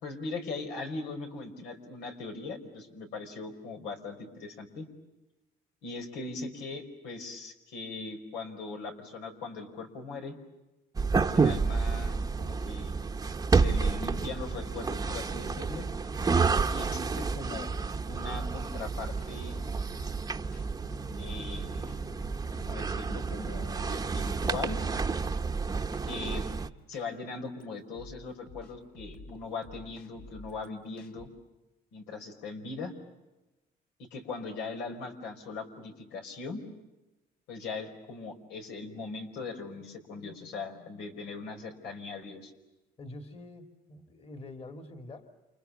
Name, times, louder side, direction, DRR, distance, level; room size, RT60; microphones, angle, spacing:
voice 1, 0.0-4.9 5.8-10.3 11.2-12.9 13.5-15.9 16.7-17.7 18.1-19.6 21.2-22.0 22.6-24.8 26.1-26.5 26.9-31.3 31.9-32.9 34.0-36.6 37.5-42.5, left 3 dB, 90° left, 3 dB, 5.1 m, -40 dB
sound 1, 10.9-26.7, right 4 dB, 20° right, 1.0 m, -30 dB
sound 2, 14.1-31.3, left 2 dB, 70° left, 3.6 m, -50 dB
voice 2, 43.0-45.4, left 2 dB, 35° left, 6 dB, 2.7 m, -46 dB
29.5 x 28.5 x 7.0 m, 1.0 s
cardioid pair, 110°, 17 cm